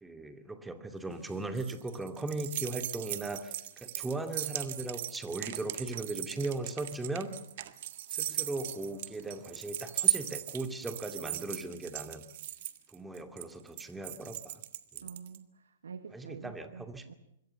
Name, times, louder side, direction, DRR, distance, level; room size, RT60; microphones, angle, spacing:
voice 1, 0.0-7.3 8.1-12.2 12.9-14.6 14.9-15.1 16.1-17.2, right 2 dB, 10° right, 7 dB, 2.4 m, -38 dB
sound 1, 1.1-15.4, right 14 dB, 55° right, 1.7 m, -37 dB
voice 2, 15.0-17.1, right 6 dB, 75° right, 10 dB, 1.5 m, -47 dB
25.5 x 22.5 x 7.0 m, 0.77 s
hypercardioid pair, 115°, 0 cm